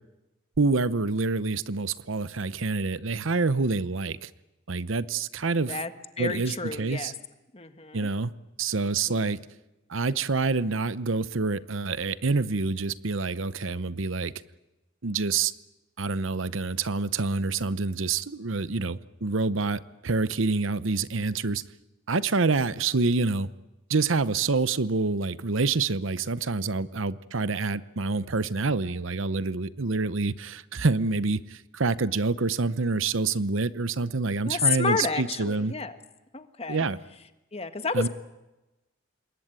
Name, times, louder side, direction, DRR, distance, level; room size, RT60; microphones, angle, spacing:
voice 1, 0.6-4.3 4.7-5.8 6.2-7.1 7.9-8.3 8.6-9.4 9.9-14.3 15.0-15.5 16.0-21.6 22.1-23.5 23.9-35.7 36.7-37.0 37.9-38.1, right 3 dB, 65° right, 0.9 m, -27 dB
voice 2, 6.2-7.1 7.5-8.1 9.1-9.3 34.4-36.0 36.3-36.8 37.5-38.1, left 4 dB, 30° left, 1.5 m, -30 dB
27.5 x 21.5 x 9.0 m
head